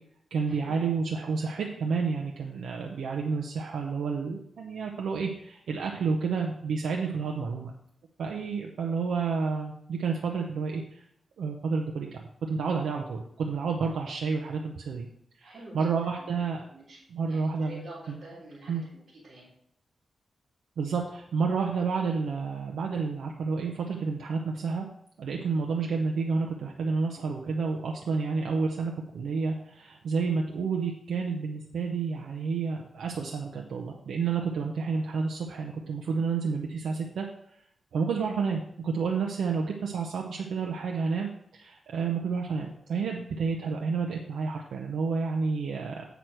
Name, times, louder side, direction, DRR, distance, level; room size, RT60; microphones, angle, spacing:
voice 1, 0.3-7.7 8.2-11.0 11.4-15.1 15.4-16.6 17.1-18.2 18.7-18.8 20.8-24.9 25.2-37.3 37.9-46.1, right 5 dB, 85° right, 0 dB, 0.8 m, -30 dB
voice 2, 15.4-16.3 16.7-19.5, right 2 dB, 45° right, -10 dB, 3.7 m, -48 dB
8.2 x 6.0 x 4.6 m, 0.72 s
wide cardioid pair, 125°, 0 cm